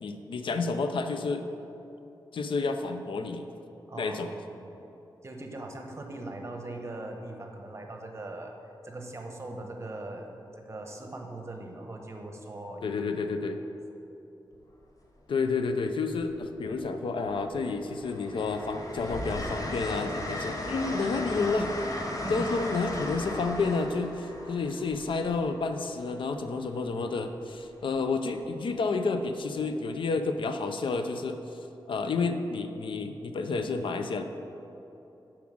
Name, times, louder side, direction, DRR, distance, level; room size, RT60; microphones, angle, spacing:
voice 1, 0.0-1.5 2.3-3.5 4.0-4.3 12.8-13.6 15.3-21.7 22.3-31.6 31.9-34.2, left 4 dB, 80° left, 7 dB, 0.5 m, -30 dB
voice 2, 3.9-4.7 5.2-8.5 8.8-10.3 10.6-12.9 22.2-22.5, right 2 dB, 35° right, 3 dB, 1.0 m, -40 dB
Train, 14.5-14.8 16.1-16.9 17.3-26.0 27.6-27.9, left 1 dB, 45° left, 0.9 m, -36 dB
7.1 x 4.9 x 6.3 m, 2.9 s
wide cardioid pair, 95°, 8 cm